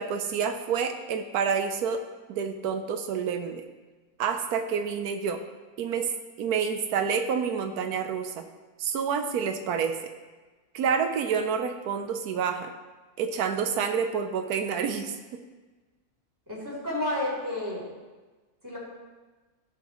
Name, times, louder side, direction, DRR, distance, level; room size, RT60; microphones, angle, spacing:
voice 1, 0.0-2.0 2.3-3.6 4.2-5.4 5.8-6.1 6.4-8.5 8.8-10.1 10.7-12.7 13.2-15.4, right 6 dB, 90° right, 7 dB, 1.2 m, -28 dB
voice 2, 16.5-17.8 18.6-18.8, left 1 dB, 10° right, -6 dB, 3.7 m, -31 dB
15.5 x 7.3 x 3.1 m, 1.3 s
omnidirectional pair, 1.6 m